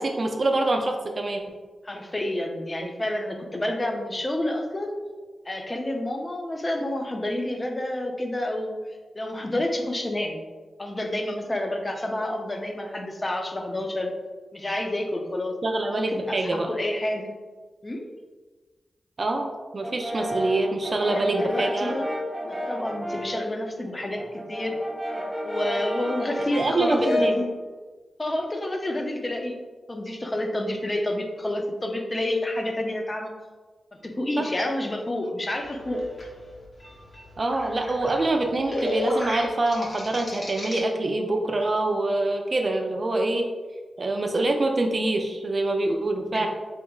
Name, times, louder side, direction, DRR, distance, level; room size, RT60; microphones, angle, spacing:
voice 1, 0.0-1.4 15.6-16.7 19.2-21.9 26.6-27.5 34.4-34.5 37.4-43.5 44.0-46.5, right 2 dB, 50° right, 3 dB, 0.4 m, -25 dB
voice 2, 1.8-5.0 5.5-8.8 9.1-10.4 10.8-14.1 14.5-15.6 15.9-17.4 17.8-18.1 21.0-22.1 22.4-24.8 25.4-27.5 28.2-29.5 29.9-33.3 34.0-36.0 46.3-46.5, left 1 dB, 30° left, 3 dB, 0.5 m, -29 dB
Brass instrument, 19.8-23.5 23.8-27.5, left 1 dB, ahead, 0.9 m, -31 dB
sound 1, 35.6-40.8, left 1 dB, 50° left, 0.9 m, -34 dB
3.4 x 2.8 x 2.3 m, 1.3 s
supercardioid pair, 40°, 0 cm